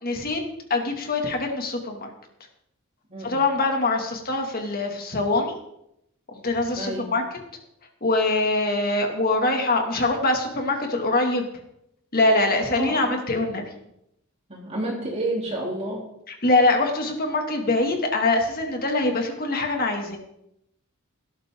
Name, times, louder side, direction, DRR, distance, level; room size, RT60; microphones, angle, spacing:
voice 1, 0.0-0.4 0.7-2.1 3.2-5.5 6.4-7.2 8.0-11.5 12.1-13.6 16.4-20.2, left 2 dB, 40° left, 3 dB, 2.3 m, -23 dB
voice 2, 6.7-7.1 12.7-13.2 14.5-16.1, right 1 dB, 30° right, -3 dB, 3.3 m, -30 dB
17.5 x 12.5 x 3.8 m, 0.79 s
head